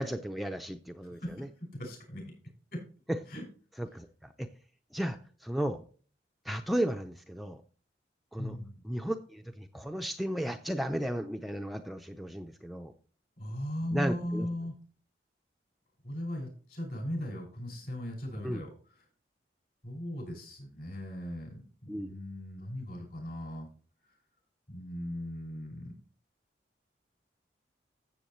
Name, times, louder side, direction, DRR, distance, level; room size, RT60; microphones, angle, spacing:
voice 1, 0.0-1.5 3.1-3.2 3.8-4.5 4.9-5.8 6.4-7.6 8.3-8.6 8.8-12.9 13.9-14.5 18.4-18.6 21.9-22.1, equal, ahead, 5 dB, 0.5 m, -34 dB
voice 2, 1.6-2.2 2.7-2.8 3.3-3.4 8.4-8.8 13.4-14.7 16.0-18.7 19.8-23.7 24.7-25.9, equal, 55° left, 1 dB, 5.9 m, -38 dB
13.5 x 7.7 x 3.1 m, 0.40 s
head